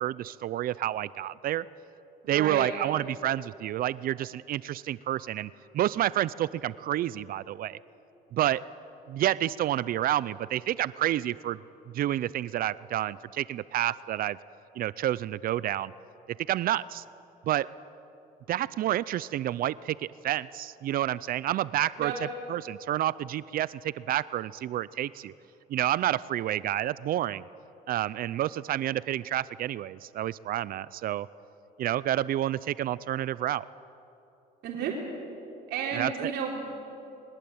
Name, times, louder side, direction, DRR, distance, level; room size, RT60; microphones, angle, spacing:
voice 1, 0.0-1.7 2.3-7.8 8.3-8.6 9.1-11.6 11.9-14.4 14.8-15.9 16.5-17.0 17.5-17.7 18.5-22.1 22.5-25.3 25.7-27.4 27.9-31.3 31.8-33.6 35.9-36.3, right 13 dB, 60° right, 19 dB, 0.5 m, -29 dB
voice 2, 2.2-2.7 22.0-22.2 34.6-34.9 35.7-36.6, right 7 dB, 80° right, -1 dB, 3.8 m, -31 dB
22.0 x 20.5 x 8.6 m, 2.9 s
cardioid pair, 110°, 17 cm